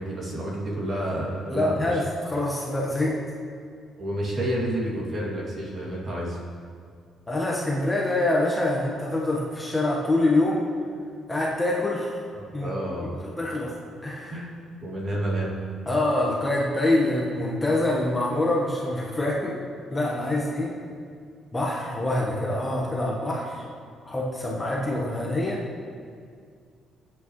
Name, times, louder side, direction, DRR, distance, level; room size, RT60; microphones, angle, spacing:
voice 1, 0.0-2.0 4.0-6.4 12.3-13.2 14.3-14.5 14.8-15.6, right 1 dB, 35° right, -4 dB, 2.5 m, -30 dB
voice 2, 1.5-3.2 7.3-10.6 11.3-12.2 12.5-12.7 13.2-13.7 14.0-14.3 15.9-19.6 19.9-20.7 21.5-23.6 24.1-25.6, left 1 dB, 15° left, -4 dB, 1.3 m, -25 dB
21.0 x 8.8 x 3.2 m, 2.2 s
cardioid pair, 165°, 0 cm